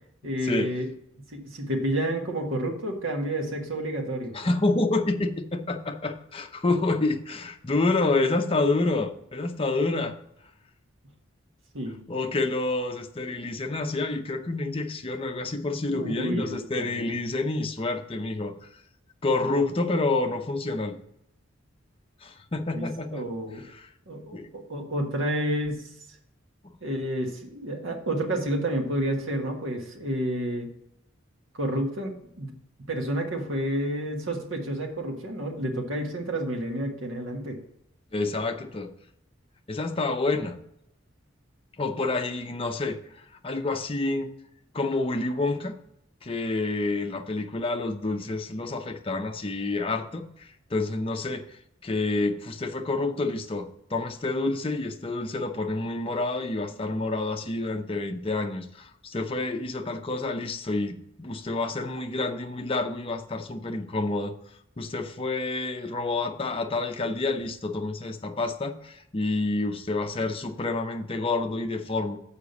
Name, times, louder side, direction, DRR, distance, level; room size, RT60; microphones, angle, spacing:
voice 1, 0.2-0.9 1.3-4.3 11.7-11.9 15.9-17.1 22.7-22.9 23.1-23.6 24.1-25.9 26.8-30.7 31.6-32.6 32.9-37.6, right 1 dB, 80° right, 2 dB, 1.5 m, -30 dB
voice 2, 4.3-10.2 12.1-18.5 19.2-21.0 22.2-23.3 23.6-23.9 24.3-24.5 38.1-38.9 39.7-40.6 41.8-43.0 43.4-44.3 44.7-45.8 46.2-51.5 51.8-64.3 64.8-72.2, left 2 dB, 30° left, 5 dB, 0.6 m, -28 dB
6.8 x 4.9 x 6.9 m, 0.77 s
head